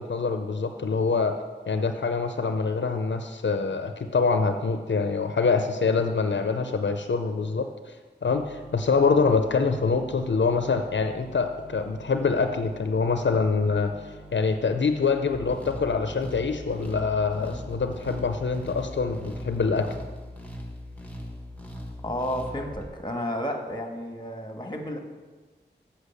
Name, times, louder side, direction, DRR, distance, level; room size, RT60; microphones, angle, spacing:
voice 1, 0.0-1.3 1.7-20.0, left 4 dB, 80° left, 7 dB, 0.5 m, -25 dB
sound 1, 8.3-20.0, right 1 dB, 35° right, 1.1 m, -47 dB
sound 2, 15.3-22.9, left 1 dB, 10° left, 1.6 m, -40 dB
voice 2, 22.0-25.0, equal, 25° left, 3 dB, 1.5 m, -32 dB
8.1 x 5.8 x 6.8 m, 1.3 s
wide cardioid pair, 50°, 19 cm